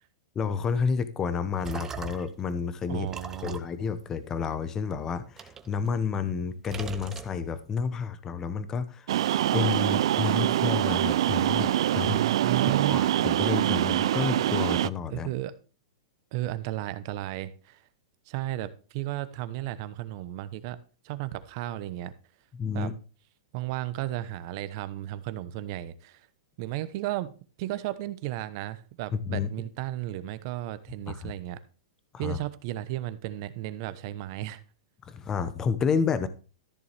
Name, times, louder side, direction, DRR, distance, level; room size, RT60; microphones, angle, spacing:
voice 1, 0.3-3.1 3.4-9.1 9.5-12.2 12.6-15.3 22.5-22.9 29.1-29.5 31.1-31.3 32.1-32.4 35.1-36.3, left 6 dB, 15° left, 1.0 m, -30 dB
sound 1, 1.3-2.4 3.1-4.8 5.4-6.3 6.6-7.8, right 6 dB, 15° right, 0.8 m, -41 dB
voice 2, 2.9-3.6 12.0-13.0 15.1-15.5 16.3-17.8 18.3-20.8 21.0-22.1 22.7-22.9 23.5-26.2 26.6-27.3 27.6-31.6 32.2-34.6, right 15 dB, 45° right, 0.9 m, -34 dB
sound 2, 9.1-14.9, right 12 dB, 65° right, 0.4 m, -24 dB
13.5 x 7.0 x 3.4 m
supercardioid pair, 155°, 3 cm